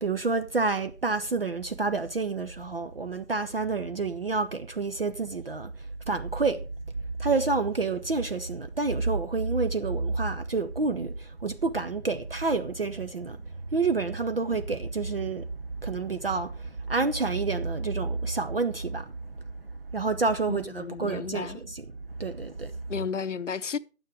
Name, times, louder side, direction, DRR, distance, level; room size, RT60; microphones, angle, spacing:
voice 1, 0.0-5.7 6.1-6.6 7.2-13.4 13.7-15.5 15.8-19.2 19.9-21.9 22.2-22.8, right 3 dB, 40° right, 0.8 m, -28 dB
voice 2, 20.5-21.6 22.9-23.8, left 6 dB, 55° left, 0.9 m, -33 dB
12.0 x 9.5 x 4.8 m
hypercardioid pair, 170°, 44 cm